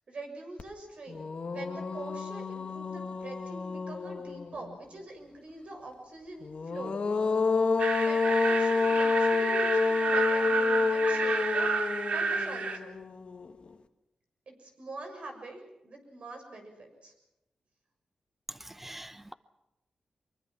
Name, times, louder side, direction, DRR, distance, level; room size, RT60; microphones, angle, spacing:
voice 1, 0.1-7.0 7.9-13.0 14.6-17.1, right 2 dB, 65° right, 4 dB, 6.7 m, -44 dB
sound 1, 0.6-0.7 1.1-4.7 6.4-13.7, left 4 dB, 55° left, 1.5 m, -29 dB
sound 2, 7.8-12.8, right 5 dB, 80° right, 2.2 m, -30 dB
voice 2, 18.6-19.3, right 1 dB, 10° right, 13 dB, 1.0 m, -45 dB
24.0 x 23.0 x 6.0 m, 0.92 s
cardioid pair, 75°, 2 cm